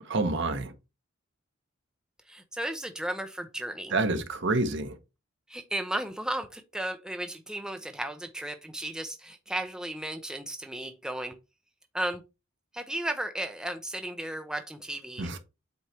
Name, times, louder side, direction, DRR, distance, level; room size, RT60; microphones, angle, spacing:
voice 1, 0.1-0.7 3.9-4.9 15.2-15.4, right 2 dB, 60° right, 1.1 m, -28 dB
voice 2, 2.3-3.9 5.5-11.4 11.9-12.2 12.7-15.3, right 1 dB, 5° right, 0.6 m, -34 dB
8.2 x 3.2 x 4.3 m
head